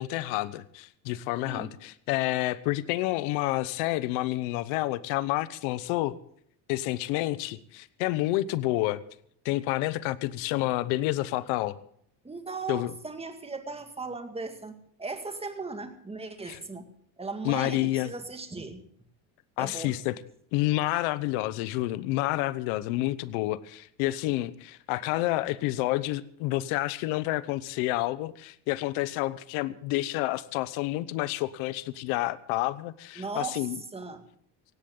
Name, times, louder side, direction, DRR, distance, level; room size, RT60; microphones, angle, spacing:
voice 1, 0.0-6.2 6.7-9.0 9.4-11.8 12.7-12.9 16.5-16.6 17.4-18.1 19.6-20.2 20.5-33.8, left 17 dB, 85° left, 17 dB, 1.1 m, -29 dB
voice 2, 1.4-1.7 12.2-16.9 17.2-18.8 19.6-20.0 33.2-34.2, right 3 dB, 10° right, 7 dB, 2.1 m, -37 dB
17.5 x 17.0 x 3.9 m, 0.63 s
cardioid pair, 130°, 48 cm